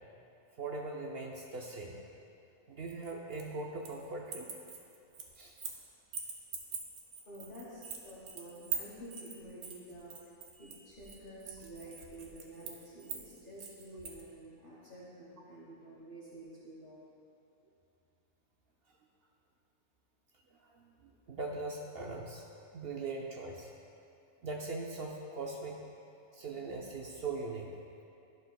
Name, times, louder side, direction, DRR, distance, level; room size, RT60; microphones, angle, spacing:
voice 1, 0.6-2.0 2.7-4.5 5.4-5.6 20.7-22.4 22.7-23.7 24.4-25.8 26.3-27.7, right 3 dB, 60° right, -1 dB, 0.7 m, -40 dB
sound 1, 2.9-4.0 4.3-5.8 6.1-14.2, right 7 dB, 75° right, 1.2 m, -43 dB
voice 2, 7.3-10.3 10.6-17.0, right 1 dB, 40° left, -7 dB, 1.2 m, -50 dB
12.0 x 5.9 x 2.3 m, 2.7 s
omnidirectional pair, 1.5 m